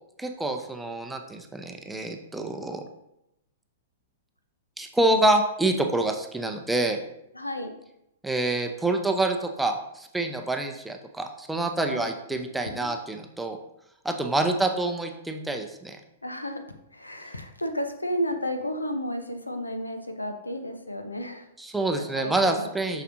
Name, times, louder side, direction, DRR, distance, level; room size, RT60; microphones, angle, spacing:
voice 1, 0.2-2.8 4.8-7.0 8.2-13.6 14.0-16.0 21.6-23.0, right 2 dB, 5° right, 4 dB, 0.6 m, -27 dB
voice 2, 7.3-7.7 11.8-12.9 16.2-16.6 16.9-21.5 22.1-23.0, equal, 80° left, 7 dB, 0.7 m, -33 dB
6.7 x 6.0 x 2.7 m, 0.82 s
figure-of-eight pair, 105°, 0 cm